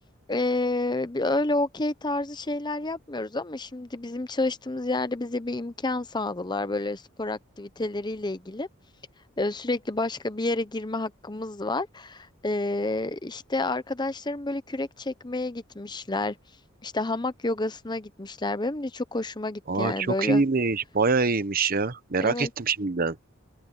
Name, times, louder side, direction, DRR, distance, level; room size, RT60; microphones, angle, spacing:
voice 1, 0.3-8.7 9.4-16.4 16.8-20.4 22.2-22.5, left 2 dB, 20° left, 0.8 m, -29 dB
voice 2, 19.7-23.2, right 4 dB, 45° right, 0.9 m, -25 dB
open air
head